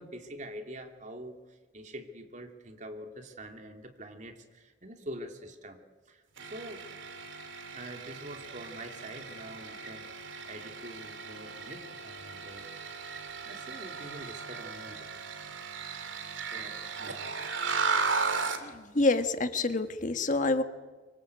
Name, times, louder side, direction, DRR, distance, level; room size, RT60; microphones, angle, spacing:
voice 1, 0.0-5.8 6.1-6.9 7.7-12.7 12.9-13.2 13.4-15.1 16.5-17.3, right 1 dB, 40° right, 4 dB, 2.9 m, -45 dB
sound 1, 6.4-18.7, right 4 dB, 85° right, 2.9 m, -36 dB
voice 2, 18.6-20.6, left 2 dB, 40° left, 8 dB, 1.6 m, -27 dB
25.0 x 24.5 x 8.3 m, 1.3 s
head